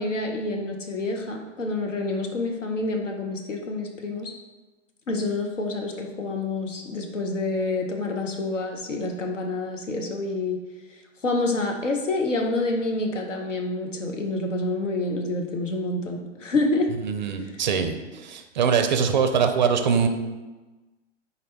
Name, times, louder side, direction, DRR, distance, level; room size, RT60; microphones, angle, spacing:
voice 1, 0.0-4.3 5.1-10.6 11.2-16.9 17.4-17.5, left 2 dB, 85° left, 3 dB, 0.7 m, -27 dB
voice 2, 17.0-18.0 18.2-20.1, right 6 dB, 40° right, 7 dB, 0.4 m, -22 dB
4.0 x 3.3 x 4.0 m, 1.2 s
figure-of-eight pair, 120°, 37 cm